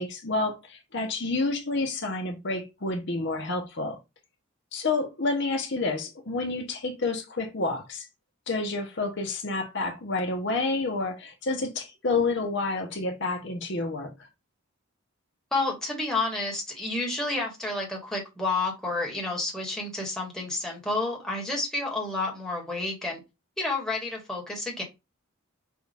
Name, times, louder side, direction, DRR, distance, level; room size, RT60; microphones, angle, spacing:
voice 1, 0.0-4.0 4.7-8.1 8.5-14.1, left 3 dB, 55° left, 0.8 m, -29 dB
voice 2, 15.5-23.2 23.6-24.8, left 2 dB, 5° left, 1.3 m, -30 dB
6.1 x 2.4 x 3.4 m
head